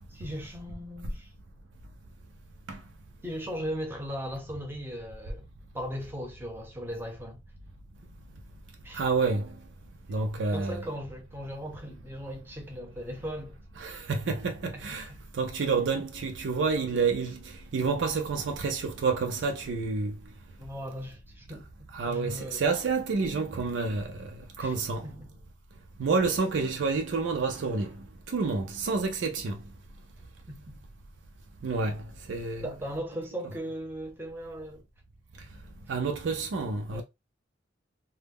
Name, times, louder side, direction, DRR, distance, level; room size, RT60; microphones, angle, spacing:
voice 1, 0.1-1.3 3.2-5.5 5.7-7.4 8.8-9.0 10.5-13.6 14.7-15.2 20.6-22.6 24.6-24.7 25.0-25.3 30.5-30.8 32.6-34.8 36.9-37.0, equal, 10° right, 0.7 m, -38 dB
voice 2, 8.9-9.5 10.1-10.8 13.8-15.1 15.3-17.4 17.7-20.1 21.9-24.3 24.6-25.0 26.0-27.9 28.3-29.6 31.6-32.0 32.3-32.6 35.9-37.0, right 4 dB, 80° right, 0.4 m, -28 dB
2.1 x 2.0 x 3.4 m
head